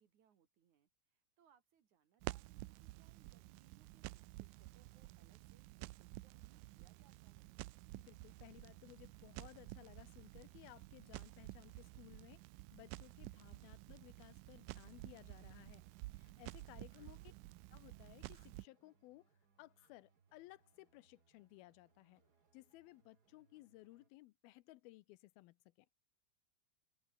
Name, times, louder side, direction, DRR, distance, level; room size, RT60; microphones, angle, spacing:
voice 1, 0.0-7.6 17.0-17.3, right 8 dB, 55° right, 3.1 m, -73 dB
Crackle, 2.2-18.7, right 20 dB, 80° right, 1.9 m, -52 dB
sound 1, 5.9-6.0 7.0-7.1 8.1-8.2 9.2-9.3 10.3-10.4 11.5-11.6 12.6-12.7 13.7-13.8 15.9-16.0 16.3-16.4 16.7-17.2 18.2-18.6 19.8-20.0 22.1-22.5, left 4 dB, 55° left, 6.9 m, -80 dB
voice 2, 8.0-12.5 12.7-15.8 16.2-17.2 17.7-19.3 19.6-22.2 22.5-25.9, left 18 dB, 85° left, 2.5 m, -60 dB
sound 2, 14.7-24.1, right 5 dB, 35° right, 1.8 m, -78 dB
omnidirectional pair, 4.4 m